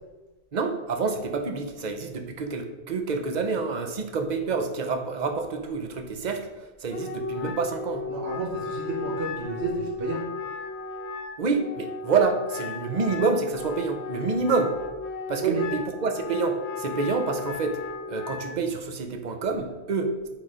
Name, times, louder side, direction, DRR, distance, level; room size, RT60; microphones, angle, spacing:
voice 1, 0.5-8.1 11.4-14.8 15.3-20.3, right 4 dB, 45° right, 5 dB, 0.9 m, -28 dB
Wind instrument woodwind instrument, 6.9-18.6, left 4 dB, 80° left, 1.0 m, -35 dB
voice 2, 8.1-10.3 15.4-15.7, right 4 dB, 60° right, -1 dB, 1.4 m, -30 dB
8.5 x 4.1 x 5.0 m, 1.1 s
omnidirectional pair, 1.1 m